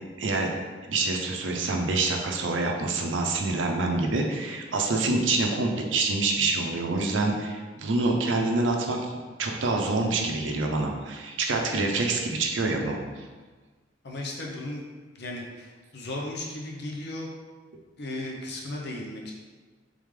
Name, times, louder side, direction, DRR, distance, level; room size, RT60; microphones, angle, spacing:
voice 1, 0.2-0.5 0.8-9.1 9.4-13.0, right 3 dB, 85° right, 2 dB, 0.6 m, -26 dB
voice 2, 14.0-14.8 15.1-17.3 18.0-19.3, left 1 dB, 60° left, -2 dB, 0.8 m, -35 dB
3.6 x 3.2 x 3.6 m, 1.4 s
head